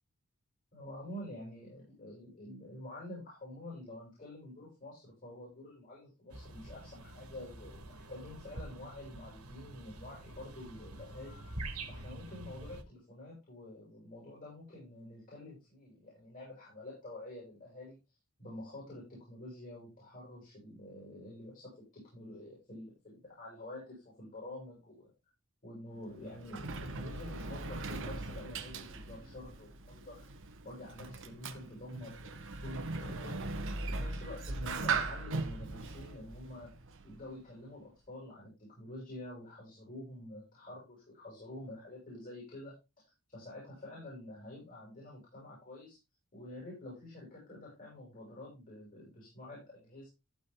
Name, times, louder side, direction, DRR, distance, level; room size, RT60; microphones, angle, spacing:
voice 1, 0.7-11.4 11.9-18.0 18.4-25.1 25.6-30.3 30.6-36.7 37.0-42.8 43.3-46.0 46.3-50.1, left 1 dB, 40° left, -5 dB, 7.1 m, -48 dB
sound 1, 6.3-12.8, right 2 dB, 75° right, 2.7 m, -46 dB
Sliding door, 26.0-37.4, right 3 dB, 60° right, 1.5 m, -39 dB
15.0 x 5.1 x 3.8 m, 0.26 s
head